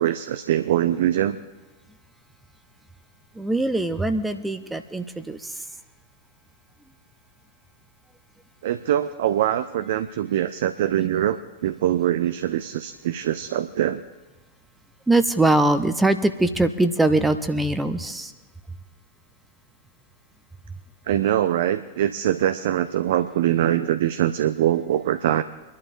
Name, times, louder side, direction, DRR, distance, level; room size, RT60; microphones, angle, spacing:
voice 1, 0.0-1.4 8.6-14.0 21.1-25.4, right 11 dB, 55° right, 11 dB, 0.5 m, -23 dB
voice 2, 3.3-5.6 15.1-18.3, right 2 dB, 5° right, 10 dB, 0.7 m, -22 dB
27.0 x 11.5 x 2.6 m, 1.2 s
figure-of-eight pair, 90°, 0 cm